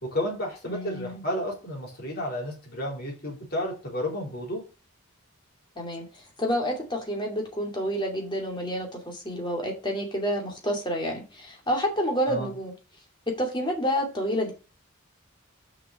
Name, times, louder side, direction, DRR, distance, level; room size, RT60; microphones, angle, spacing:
voice 1, 0.0-4.6 12.3-12.5, left 1 dB, 45° left, -1 dB, 4.1 m, -32 dB
voice 2, 0.7-1.2 5.8-12.7 13.4-14.5, equal, 20° left, 1 dB, 2.5 m, -29 dB
6.8 x 5.9 x 5.2 m, 0.33 s
head